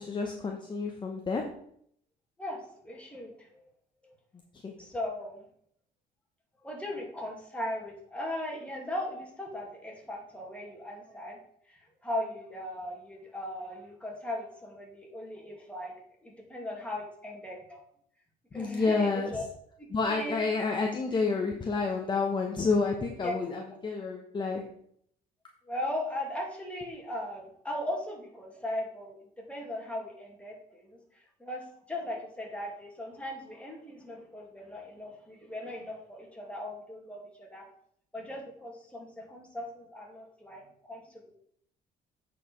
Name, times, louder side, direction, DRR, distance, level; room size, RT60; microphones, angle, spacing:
voice 1, 0.0-1.4 4.6-4.7 18.5-19.3 19.9-24.6, left 4 dB, 25° left, 1 dB, 1.2 m, -29 dB
voice 2, 2.4-3.6 4.0-4.1 4.8-5.4 6.6-11.4 11.7-15.9 16.2-17.8 18.5-19.4 19.8-20.4 23.2-23.3 25.6-29.2 29.5-37.7 38.1-41.3, left 1 dB, 5° left, -1 dB, 2.6 m, -38 dB
8.4 x 5.0 x 5.3 m, 0.67 s
cardioid pair, 110°, 17 cm